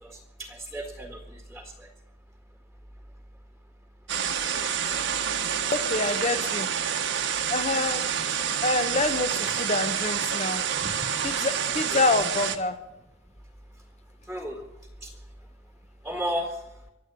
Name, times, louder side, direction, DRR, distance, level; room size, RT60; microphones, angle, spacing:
voice 1, 0.0-1.6 14.3-14.6 15.0-15.1 16.0-16.6, equal, ahead, 3 dB, 1.7 m, -33 dB
sound 1, 4.1-12.6, right 8 dB, 60° right, 1.4 m, -28 dB
voice 2, 5.7-6.7 7.5-8.1 8.6-10.9 11.2-12.8, left 2 dB, 35° left, 10 dB, 1.2 m, -27 dB
24.0 x 8.5 x 7.0 m, 1.0 s
head